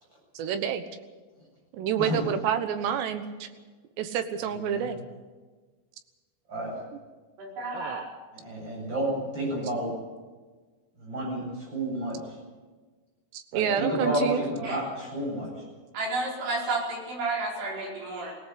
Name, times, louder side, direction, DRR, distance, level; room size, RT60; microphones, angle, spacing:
voice 1, 0.3-0.8 1.7-3.5 4.0-5.0 7.7-8.0 13.3-14.4, right 8 dB, 70° right, 9 dB, 3.0 m, -28 dB
voice 2, 7.4-8.1 13.8-14.2 14.6-14.8 15.9-18.3, right 2 dB, 55° right, -2 dB, 6.7 m, -31 dB
voice 3, 8.4-9.9 11.0-12.2 13.5-15.5, right 1 dB, 20° right, -1 dB, 8.6 m, -30 dB
20.5 x 17.5 x 8.2 m, 1.4 s
omnidirectional pair, 5.8 m